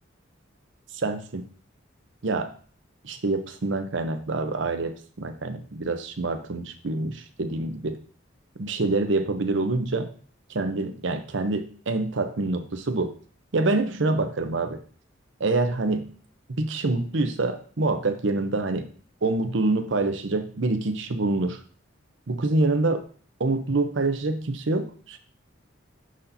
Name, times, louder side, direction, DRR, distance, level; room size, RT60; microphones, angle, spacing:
voice 1, 0.9-1.4 2.2-2.5 3.0-8.0 8.6-10.1 10.5-13.1 13.5-14.8 15.4-16.1 16.6-18.9 19.2-21.6 22.3-23.0 23.4-25.2, right 2 dB, 70° right, 8 dB, 0.7 m, -26 dB
11.0 x 4.2 x 2.7 m, 0.43 s
head